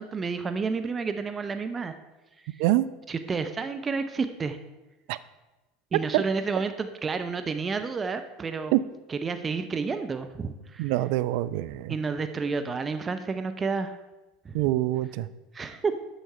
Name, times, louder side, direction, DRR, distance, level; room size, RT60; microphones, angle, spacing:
voice 1, 0.0-1.9 2.5-2.6 3.1-4.6 5.9-8.7 9.1-10.9 11.9-14.0 14.4-14.6 15.5-15.9, right 4 dB, 25° right, 9 dB, 0.7 m, -30 dB
voice 2, 10.8-11.9 14.5-15.3, right 16 dB, 65° right, 15 dB, 0.4 m, -25 dB
8.0 x 6.2 x 5.6 m, 1.1 s
hypercardioid pair, 80°, 0 cm